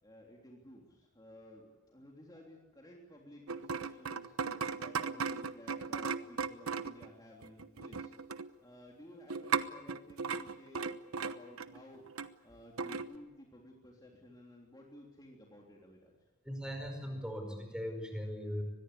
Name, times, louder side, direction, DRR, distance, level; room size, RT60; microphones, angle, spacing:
voice 1, 0.0-4.4 4.8-8.1 8.6-10.8 11.2-12.0 12.4-16.1, left 1 dB, 20° left, -1 dB, 3.3 m, -55 dB
sound 1, 3.5-7.1 7.4-8.5 9.3-12.3 12.8-13.1, right 5 dB, 80° right, 1.0 m, -37 dB
voice 2, 16.4-18.6, equal, 5° right, 5 dB, 5.1 m, -39 dB
24.5 x 21.0 x 8.5 m, 1.0 s
head